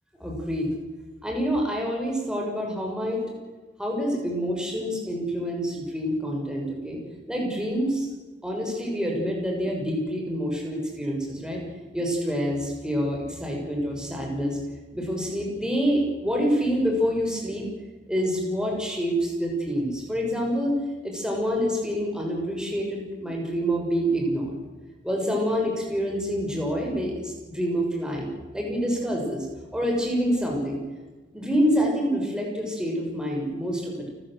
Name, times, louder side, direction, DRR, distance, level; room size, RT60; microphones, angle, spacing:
voice 1, 0.2-0.7 1.2-3.2 3.8-7.0 7.3-8.1 8.4-11.6 11.9-14.6 14.9-17.7 18.1-20.8 21.0-24.5 25.0-29.5 29.7-30.8 31.3-34.1, equal, 5° right, -1 dB, 6.5 m, -27 dB
29.0 x 15.0 x 7.8 m, 1.3 s
head